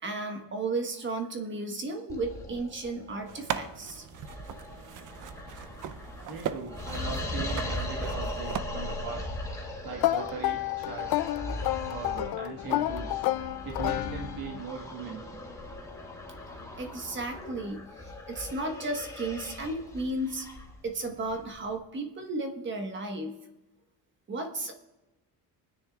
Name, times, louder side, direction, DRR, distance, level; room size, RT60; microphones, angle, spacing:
voice 1, 0.0-4.0 16.4-20.5 20.8-23.4 24.3-24.7, right 2 dB, 30° right, 4 dB, 1.3 m, -34 dB
sound 1, 2.1-21.8, left 1 dB, 10° left, 1.8 m, -39 dB
sound 2, 3.3-8.6, right 9 dB, 55° right, 0.7 m, -39 dB
voice 2, 6.3-9.3 9.8-11.3 11.9-13.3 13.6-15.2, right 4 dB, 75° right, 0 dB, 1.7 m, -39 dB
sound 3, 10.0-14.6, left 15 dB, 90° left, 0.6 m, -30 dB
23.5 x 10.0 x 2.4 m, 1.0 s
cardioid pair, 145°, 36 cm